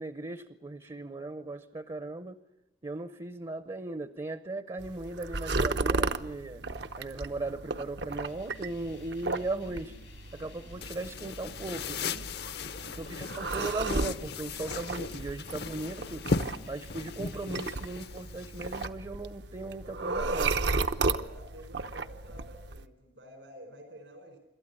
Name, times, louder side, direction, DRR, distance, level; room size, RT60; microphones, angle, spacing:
voice 1, 0.0-2.4 2.8-6.6 7.0-9.9 10.3-12.0 13.0-16.3 16.7-20.6, right 2 dB, 30° right, 13 dB, 0.7 m, -38 dB
sound 1, 4.8-22.9, right 3 dB, 70° right, 0.9 m, -35 dB
sound 2, 8.2-18.0, left 4 dB, 85° left, 2.4 m, -55 dB
sound 3, 10.8-18.9, left 4 dB, 65° left, 0.8 m, -37 dB
voice 2, 12.6-13.0 20.9-24.4, equal, 85° right, 6 dB, 4.6 m, -50 dB
27.0 x 13.0 x 9.8 m, 0.94 s
head